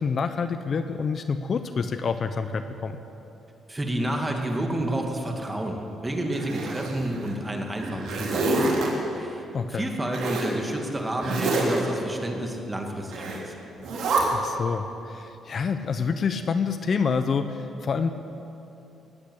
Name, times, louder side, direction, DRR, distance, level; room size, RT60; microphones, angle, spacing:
voice 1, 0.0-3.0 9.5-9.8 14.3-18.1, left 5 dB, 50° left, 9 dB, 0.7 m, -27 dB
voice 2, 3.7-13.5, right 1 dB, 15° right, 2 dB, 2.3 m, -30 dB
Zipper (clothing), 6.3-7.3 7.7-8.9 10.1-10.5 11.2-11.8 13.1-13.4 13.8-14.2, right 3 dB, 75° right, 3.3 m, -27 dB
18.5 x 8.4 x 8.3 m, 2.8 s
cardioid pair, 90°, 0 cm